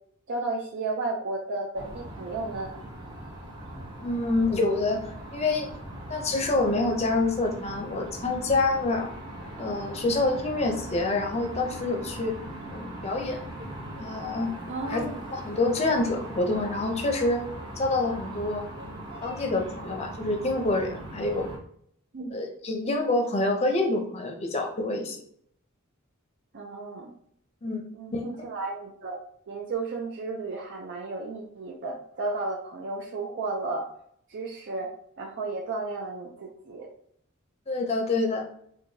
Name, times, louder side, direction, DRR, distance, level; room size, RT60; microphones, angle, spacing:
voice 1, 0.3-2.7 14.7-15.2 22.1-22.5 26.5-27.1 27.9-29.2 29.5-33.8 34.3-34.9 35.2-36.9, right 3 dB, 55° right, 0 dB, 0.5 m, -33 dB
sound 1, 1.7-21.6, right 1 dB, 20° right, 0.9 m, -40 dB
voice 2, 4.0-5.0 5.3-5.7 6.1-9.1 9.6-12.4 12.7-13.4 14.0-14.5 14.9-15.0 15.3-17.4 17.8-18.6 19.2-21.5 22.3-25.2 27.6-27.8 28.1-28.2 37.7-38.4, left 2 dB, 30° left, 3 dB, 0.6 m, -27 dB
4.6 x 2.3 x 2.7 m, 0.65 s
head